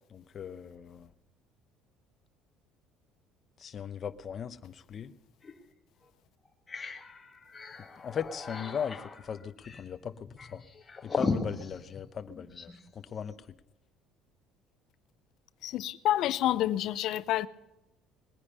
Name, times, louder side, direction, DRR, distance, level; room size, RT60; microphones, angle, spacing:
voice 1, 0.1-1.1 3.6-5.1 8.0-10.6 11.0-13.3, left 7 dB, 35° left, 0.8 m, -38 dB
sound 1, 5.4-5.6 6.0-6.1 6.4-12.8, left 4 dB, 15° left, 1.4 m, -38 dB
voice 2, 15.6-17.5, left 13 dB, 55° left, 0.5 m, -28 dB
20.5 x 9.9 x 5.5 m
cardioid pair, 145°, 0 cm